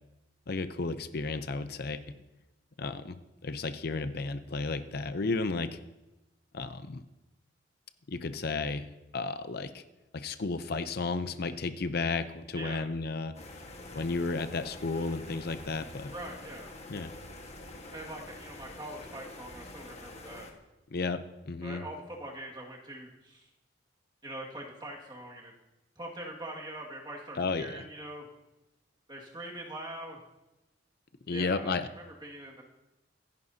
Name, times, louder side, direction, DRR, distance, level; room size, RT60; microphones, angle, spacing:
voice 1, 0.5-2.0 2.8-3.2 3.4-5.8 6.5-7.0 8.1-8.9 9.1-9.8 10.1-13.4 13.9-16.1 16.9-17.1 20.9-21.8 27.4-27.8 31.3-31.9, left 3 dB, 55° left, 10 dB, 0.6 m, -33 dB
voice 2, 12.5-12.9 16.1-16.7 17.9-20.5 21.6-23.5 24.2-25.5 26.0-28.3 29.1-30.2 31.3-31.7 32.2-32.6, right 1 dB, 25° right, -2 dB, 2.0 m, -43 dB
sound 1, 13.3-20.5, left 2 dB, 35° left, 1.5 m, -47 dB
25.0 x 10.5 x 2.8 m, 1.0 s
head